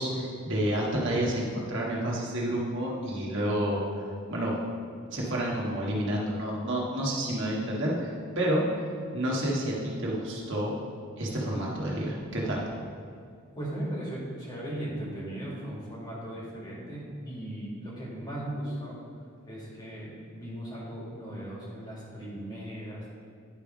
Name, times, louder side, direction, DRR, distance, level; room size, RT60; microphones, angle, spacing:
voice 1, 0.0-3.8 4.3-4.6 5.1-8.7 9.1-10.7 11.2-12.6, right 1 dB, 60° right, -4 dB, 1.5 m, -29 dB
voice 2, 13.6-19.0 19.5-23.0, right 1 dB, 20° left, -6 dB, 1.9 m, -37 dB
9.8 x 3.5 x 5.0 m, 2.3 s
head